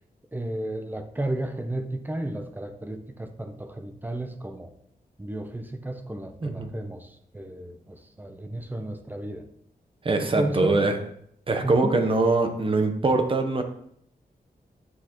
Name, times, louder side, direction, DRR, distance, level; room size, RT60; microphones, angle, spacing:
voice 1, 0.3-4.7 5.2-9.5 10.2-10.9 11.6-12.0, right 1 dB, 10° right, 0.6 m, -33 dB
voice 2, 10.0-11.0 11.5-13.6, right 3 dB, 35° right, 0.9 m, -23 dB
10.0 x 6.2 x 3.0 m
wide cardioid pair, 165°, 16 cm